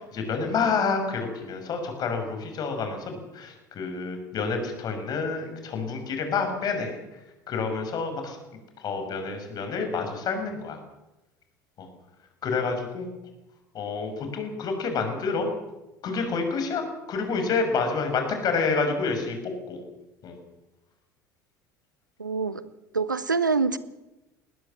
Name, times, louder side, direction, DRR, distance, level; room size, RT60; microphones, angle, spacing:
voice 1, 0.0-7.2 7.5-8.4 8.8-10.8 11.8-11.9 12.4-13.1 13.7-15.5 16.0-19.8 20.2-20.4, left 4 dB, 40° left, 6 dB, 6.3 m, -28 dB
voice 2, 22.2-22.6 22.9-23.8, right 4 dB, 85° right, 17 dB, 0.9 m, -25 dB
21.0 x 19.0 x 7.6 m, 0.97 s
figure-of-eight pair, 65°, 10 cm